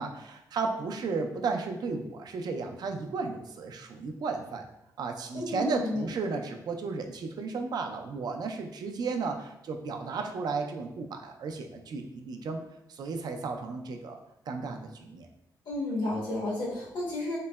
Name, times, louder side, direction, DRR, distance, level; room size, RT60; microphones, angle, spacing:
voice 1, 0.0-4.6 5.0-12.6 12.9-14.2 14.5-15.3, right 4 dB, 65° right, 4 dB, 0.4 m, -34 dB
voice 2, 5.3-6.0 15.6-17.4, left 2 dB, 90° left, -6 dB, 1.2 m, -32 dB
3.7 x 2.0 x 2.2 m, 0.85 s
cardioid pair, 120°, 7 cm